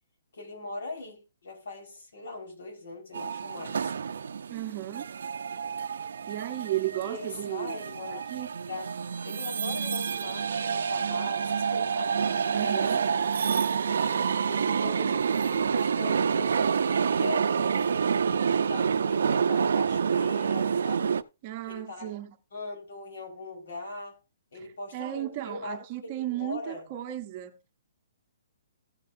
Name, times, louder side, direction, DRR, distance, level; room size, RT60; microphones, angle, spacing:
voice 1, 0.3-3.9 7.0-8.2 8.7-8.9 9.2-12.9 13.8-18.1 18.4-21.2 21.6-22.1 22.5-24.2 24.5-26.9, left 3 dB, 70° left, 4.7 m, -40 dB
sound 1, 3.1-21.2, right 6 dB, 75° right, 0.6 m, -28 dB
voice 2, 4.5-5.1 6.3-7.7 8.1-8.5 12.5-13.0 21.4-22.3 24.9-27.6, right 14 dB, 25° right, 0.8 m, -34 dB
15.5 x 7.5 x 2.6 m
hypercardioid pair, 175°, 0 cm